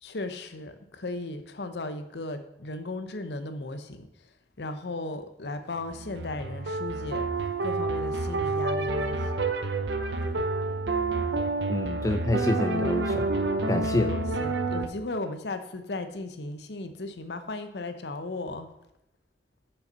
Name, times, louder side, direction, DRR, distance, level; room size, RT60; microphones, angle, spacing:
voice 1, 0.0-4.1 4.6-7.3 7.6-9.3 14.0-18.7, left 2 dB, 80° left, 9 dB, 0.8 m, -36 dB
sound 1, 5.8-14.9, right 3 dB, 85° right, 0.7 m, -28 dB
voice 2, 11.7-13.3 13.7-14.1, left 1 dB, 20° left, 7 dB, 0.4 m, -27 dB
6.7 x 5.6 x 5.6 m, 0.85 s
head